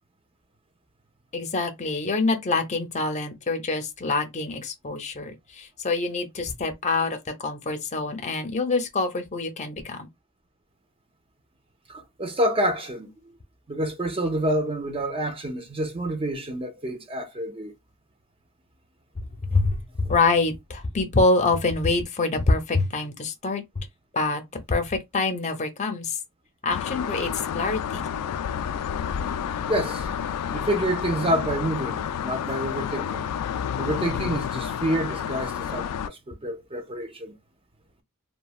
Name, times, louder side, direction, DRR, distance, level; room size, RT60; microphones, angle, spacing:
voice 1, 1.3-10.1 19.5-23.9 24.1-24.4 24.7-26.2 26.6-28.1, left 3 dB, 30° left, 0.6 m, -25 dB
voice 2, 11.9-13.1 13.7-17.7 29.7-30.1 30.5-33.3 33.8-37.3, right 1 dB, 25° right, 0.6 m, -28 dB
sound 1, 26.7-36.1, left 8 dB, 90° left, 0.3 m, -30 dB
3.1 x 2.2 x 2.3 m
head